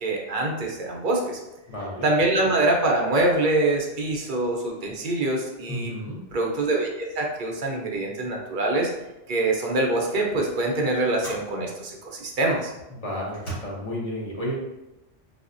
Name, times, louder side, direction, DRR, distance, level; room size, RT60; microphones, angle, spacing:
voice 1, 0.0-1.4 2.0-5.9 6.3-8.9 9.3-12.7, right 2 dB, 55° right, 0 dB, 0.6 m, -24 dB
voice 2, 1.7-2.1 5.7-6.2 12.9-14.6, equal, 35° left, -4 dB, 0.7 m, -32 dB
sound 1, 8.9-9.1 10.1-10.3 11.2-11.6 12.4-12.5 13.3-13.6, right 2 dB, 65° left, 1.6 m, -38 dB
4.1 x 2.1 x 2.4 m, 0.96 s
omnidirectional pair, 1.2 m